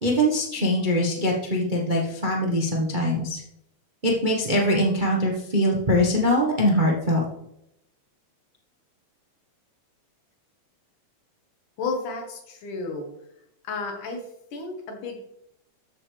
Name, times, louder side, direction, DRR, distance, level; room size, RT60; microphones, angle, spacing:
voice 1, 0.0-3.4 4.0-7.2, equal, 40° right, -2 dB, 0.7 m, -22 dB
voice 2, 11.8-13.1 13.6-14.3 14.5-15.2, left 3 dB, 90° left, 2 dB, 3.3 m, -32 dB
13.5 x 7.1 x 3.4 m, 0.78 s
omnidirectional pair, 3.5 m